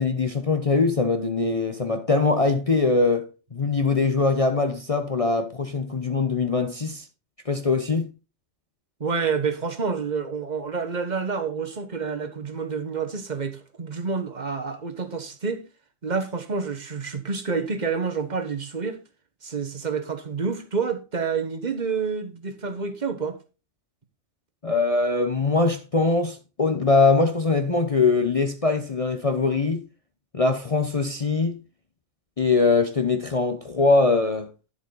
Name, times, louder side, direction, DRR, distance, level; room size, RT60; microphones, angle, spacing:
voice 1, 0.0-7.1 7.5-8.1 24.6-29.8 30.3-31.6 32.4-34.5, left 3 dB, 30° left, 0.7 m, -22 dB
voice 2, 9.0-15.6 16.0-19.0 19.4-23.4, right 5 dB, 35° right, 1.3 m, -28 dB
11.0 x 7.1 x 3.9 m
omnidirectional pair, 1.4 m